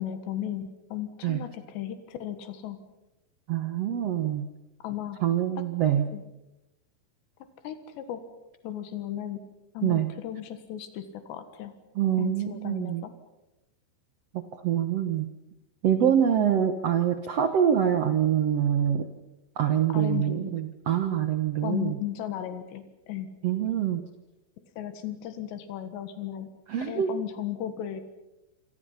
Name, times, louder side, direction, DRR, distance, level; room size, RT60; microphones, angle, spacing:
voice 1, 0.0-2.8 4.8-5.2 6.1-6.2 7.6-8.2 8.6-9.4 9.8-11.7 12.2-13.1 16.0-16.5 19.9-20.5 21.6-23.3 24.8-26.5 26.9-28.0, left 11 dB, 90° left, 9 dB, 3.8 m, -35 dB
voice 2, 3.5-4.5 5.2-6.1 9.8-10.1 11.9-13.0 14.3-15.3 15.8-19.1 19.6-22.0 23.4-24.0 26.7-27.1, right 9 dB, 80° right, 8 dB, 1.4 m, -25 dB
27.5 x 26.5 x 5.7 m, 0.95 s
omnidirectional pair, 4.9 m